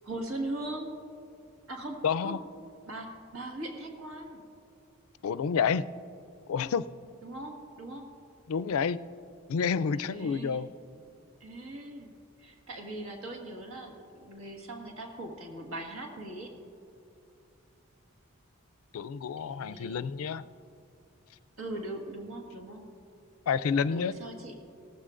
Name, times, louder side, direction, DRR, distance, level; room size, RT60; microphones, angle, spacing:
voice 1, 0.0-1.0 1.7-2.4 2.9-4.4 7.2-8.1 9.9-10.7 11.4-12.1 12.4-16.5 19.4-20.1 21.6-22.9 23.9-24.5, right 1 dB, 75° right, 2 dB, 1.8 m, -40 dB
voice 2, 2.0-2.4 5.2-5.9 6.5-6.9 8.5-9.0 9.5-10.7 18.9-20.4 23.5-24.1, left 6 dB, 85° left, 15 dB, 0.4 m, -29 dB
17.5 x 15.0 x 2.5 m, 2.7 s
head